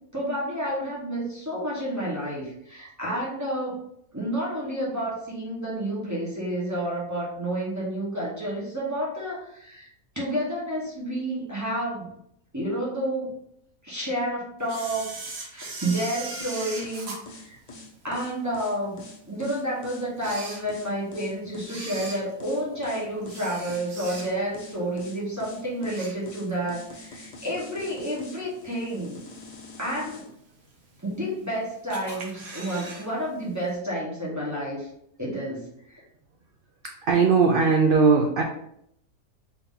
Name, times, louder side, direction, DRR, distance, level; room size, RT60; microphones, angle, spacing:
voice 1, 0.0-3.8 4.1-9.9 10.1-12.1 12.5-13.3 13.8-17.6 18.0-29.2 29.8-30.3 31.0-34.9 35.2-36.0, right 1 dB, 15° right, -7 dB, 1.1 m, -30 dB
Camera, 14.7-18.3 18.8-18.9 19.6-19.7 20.1-21.1 21.6-24.6 25.0-25.3 25.6-26.7 27.0-27.1 28.0-28.1 28.7-29.1 29.5-29.6 29.8-29.9 30.1-30.2 31.0-31.5 31.9-33.1 33.3-33.4 33.7-33.8, right 2 dB, 50° right, 1.1 m, -39 dB
sound 1, 16.4-30.3, left 2 dB, 60° left, 0.4 m, -45 dB
voice 2, 37.0-38.4, right 5 dB, 75° right, 2 dB, 0.5 m, -19 dB
3.9 x 2.9 x 3.6 m, 0.73 s
omnidirectional pair, 1.5 m